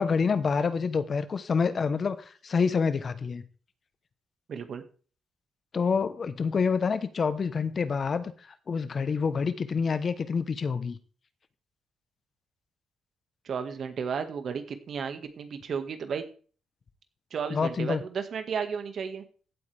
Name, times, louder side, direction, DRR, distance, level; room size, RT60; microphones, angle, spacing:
voice 1, 0.0-2.2 2.4-3.4 5.7-8.3 8.7-11.0 17.5-18.0, left 5 dB, 45° left, 13 dB, 0.9 m, -27 dB
voice 2, 4.5-4.8 13.4-16.2 17.3-19.2, right 6 dB, 55° right, 8 dB, 1.7 m, -33 dB
16.0 x 8.2 x 3.4 m, 0.41 s
cardioid pair, 100°, 0 cm